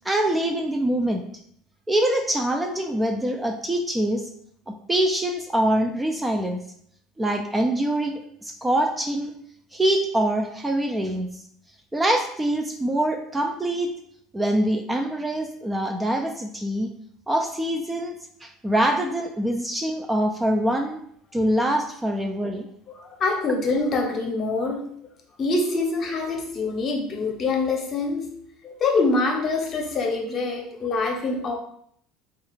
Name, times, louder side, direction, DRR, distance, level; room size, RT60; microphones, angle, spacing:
voice 1, 0.0-1.2 1.9-4.2 4.9-6.6 7.2-9.3 9.7-11.3 11.9-13.9 14.3-16.9 17.3-18.1 18.4-21.0 21.3-22.7, right 1 dB, 10° right, 3 dB, 0.4 m, -24 dB
voice 2, 23.0-24.9 25.4-28.4 28.6-31.6, left 3 dB, 40° left, 1 dB, 0.8 m, -25 dB
3.2 x 2.4 x 3.1 m, 0.66 s
supercardioid pair, 95°, 0 cm